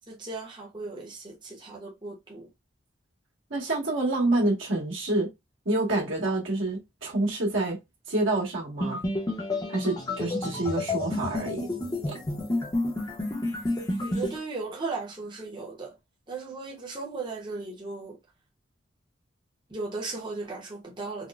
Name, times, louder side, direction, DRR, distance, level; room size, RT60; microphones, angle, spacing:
voice 1, 0.1-2.5 14.0-15.9 16.3-18.2 19.7-21.3, right 3 dB, 25° right, 0.7 m, -36 dB
voice 2, 3.5-5.3 5.6-7.8 8.1-9.0 9.7-11.7 12.1-12.2, right 2 dB, 85° right, 1.5 m, -27 dB
sound 1, 8.8-14.4, left 2 dB, 20° left, 0.7 m, -30 dB
4.0 x 2.1 x 2.3 m
head